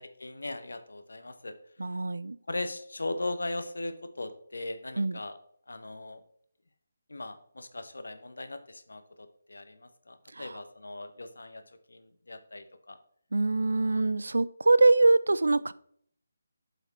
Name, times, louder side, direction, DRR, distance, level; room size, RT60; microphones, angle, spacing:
voice 1, 0.0-1.5 1.9-2.0 2.5-5.4 5.7-6.2 7.1-13.0, left 2 dB, 75° left, 10 dB, 0.9 m, -39 dB
voice 2, 1.8-2.4 5.0-5.2 10.4-10.5 13.3-15.7, right 2 dB, 75° right, 19 dB, 0.3 m, -23 dB
7.8 x 5.0 x 4.2 m, 0.65 s
figure-of-eight pair, 150°, 0 cm